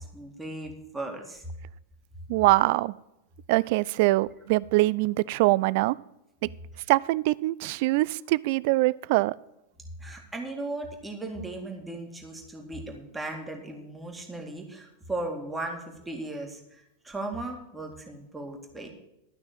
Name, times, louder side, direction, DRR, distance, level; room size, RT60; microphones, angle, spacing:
voice 1, 0.0-1.5 10.0-18.9, right 2 dB, 10° right, 1 dB, 2.2 m, -37 dB
voice 2, 2.3-2.9 3.5-6.0 6.4-6.5 6.9-9.3, right 19 dB, 50° right, 21 dB, 0.3 m, -23 dB
12.5 x 6.1 x 7.5 m, 0.87 s
figure-of-eight pair, 90°, 0 cm